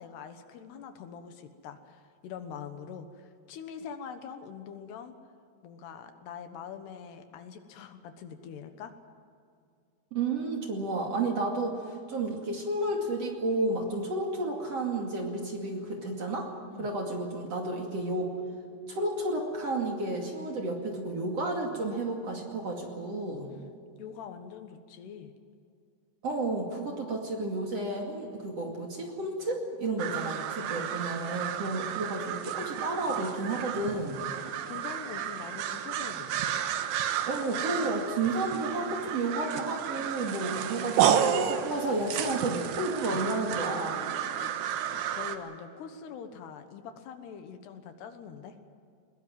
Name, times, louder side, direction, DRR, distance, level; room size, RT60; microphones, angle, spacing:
voice 1, 0.0-5.1 5.6-8.9 16.7-16.9 23.5-23.7 24.0-25.3 30.0-30.2 34.4-36.4 43.1-43.3 44.3-48.6, left 7 dB, 75° left, 8 dB, 3.3 m, -44 dB
voice 2, 10.1-16.5 16.8-18.3 18.9-23.5 26.2-34.2 37.3-44.0, right 2 dB, 40° right, 1 dB, 2.9 m, -32 dB
sound 1, 30.0-45.4, right 9 dB, 75° right, 3.1 m, -32 dB
21.5 x 21.5 x 7.6 m, 2.4 s
omnidirectional pair, 4.9 m